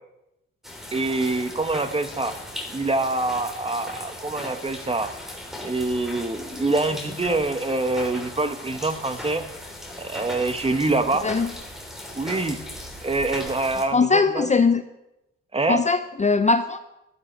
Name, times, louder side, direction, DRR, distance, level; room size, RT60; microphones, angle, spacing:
sound 1, 0.6-13.8, left 1 dB, ahead, 3.4 m, -38 dB
voice 1, 0.9-2.4 2.7-5.1 5.6-9.5 10.0-11.3 12.1-12.6 13.0-14.5 15.5-15.8, right 2 dB, 20° right, 10 dB, 1.2 m, -25 dB
voice 2, 13.9-14.8 15.7-16.8, left 4 dB, 25° left, 10 dB, 0.6 m, -20 dB
15.0 x 12.5 x 4.5 m, 0.91 s
cardioid pair, 90°, 30 cm